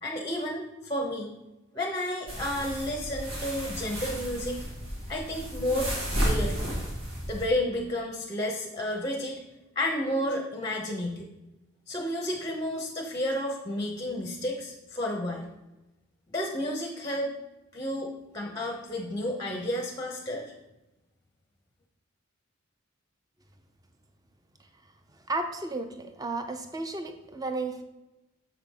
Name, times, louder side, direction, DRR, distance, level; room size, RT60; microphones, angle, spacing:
voice 1, 0.0-1.3 1.7-4.6 5.1-5.9 6.2-6.6 7.3-9.4 9.8-11.3 11.9-15.5 16.3-17.3 17.7-20.5, left 1 dB, 15° left, 1 dB, 0.7 m, -31 dB
sound 1, 2.3-7.5, equal, 85° right, 2.3 m, -32 dB
voice 2, 25.3-27.8, right 2 dB, 15° right, 7 dB, 0.5 m, -33 dB
7.3 x 5.7 x 3.5 m, 1.0 s
head